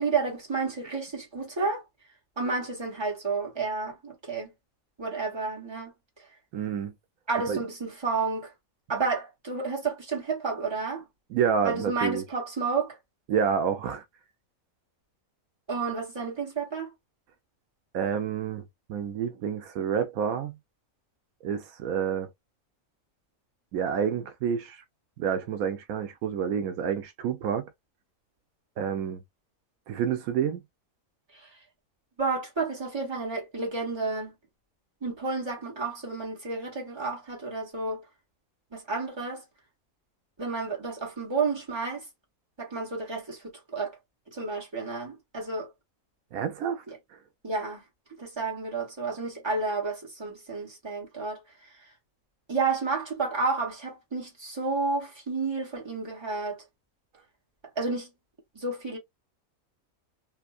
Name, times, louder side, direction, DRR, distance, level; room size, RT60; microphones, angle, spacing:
voice 1, 0.0-1.8 2.4-4.5 5.0-5.9 7.3-8.5 8.9-11.0 11.6-13.0 15.7-16.9 31.3-31.4 32.2-34.3 35.0-38.0 38.7-39.4 40.4-42.0 42.6-43.9 44.3-45.7 46.9-47.0 47.4-47.8 48.1-51.4 52.5-56.6 57.7-58.1 58.5-59.0, right 4 dB, 20° right, 1.5 m, -31 dB
voice 2, 6.5-6.9 7.5-7.6 11.3-12.2 13.3-14.0 17.9-18.6 18.9-20.6 21.4-22.3 23.7-24.8 25.2-27.7 28.8-29.2 29.9-30.6 46.3-46.8, right 7 dB, 80° right, 1.1 m, -28 dB
3.5 x 2.6 x 2.4 m
omnidirectional pair, 1.5 m